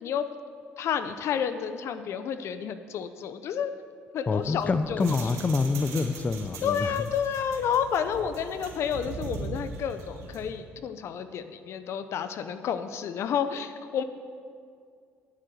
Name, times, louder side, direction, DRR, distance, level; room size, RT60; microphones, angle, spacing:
voice 1, 0.8-3.7 4.1-5.1 6.6-14.0, left 8 dB, 65° left, 11 dB, 0.7 m, -30 dB
voice 2, 4.3-7.0, left 4 dB, 30° left, 11 dB, 0.6 m, -27 dB
sound 1, 4.4-10.6, right 4 dB, 80° right, 1.6 m, -41 dB
9.6 x 7.7 x 7.9 m, 2.3 s
supercardioid pair, 80°, 5 cm